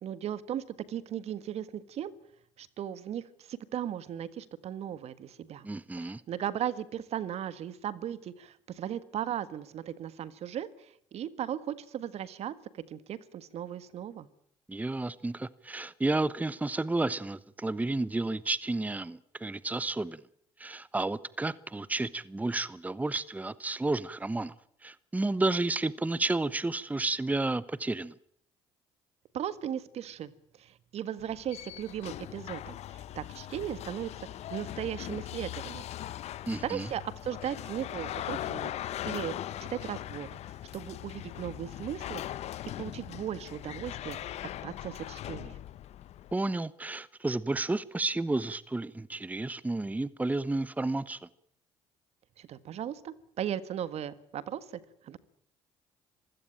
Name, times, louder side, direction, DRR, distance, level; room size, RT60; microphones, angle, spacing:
voice 1, 0.0-2.1 2.6-5.7 5.9-14.3 29.3-30.3 30.6-35.9 36.6-38.7 39.0-39.3 39.6-42.2 42.8-45.6 52.4-55.2, right 10 dB, 60° right, 1.6 m, -37 dB
voice 2, 5.6-6.2 14.7-20.2 20.6-24.5 24.8-28.1 36.5-36.9 46.3-51.3, right 2 dB, 10° right, 0.9 m, -31 dB
sound 1, 31.2-46.3, left 13 dB, 65° left, 1.0 m, -40 dB
26.0 x 16.5 x 8.9 m
hypercardioid pair, 60°, 12 cm